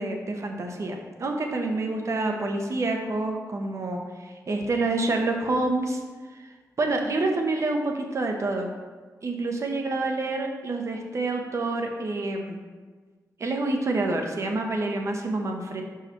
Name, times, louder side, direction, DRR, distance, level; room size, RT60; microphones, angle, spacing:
voice 1, 0.0-6.0 6.3-6.5 6.8-8.7 9.2-12.6 13.4-15.8, right 2 dB, 50° right, 3 dB, 1.0 m, -27 dB
5.6 x 4.8 x 4.4 m, 1.4 s
cardioid pair, 75°, 6 cm